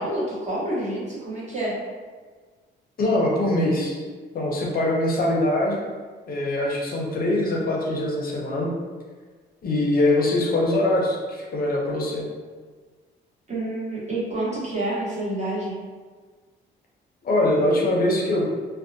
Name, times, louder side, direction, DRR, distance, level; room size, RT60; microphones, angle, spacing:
voice 1, 0.0-1.7 13.5-15.7, right 1 dB, 35° right, -7 dB, 1.0 m, -28 dB
voice 2, 3.0-4.0 4.3-5.8 6.3-8.7 9.6-12.2 17.2-18.4, left 1 dB, 50° left, -2 dB, 0.5 m, -23 dB
2.6 x 2.0 x 2.6 m, 1.5 s
cardioid pair, 90°, 20 cm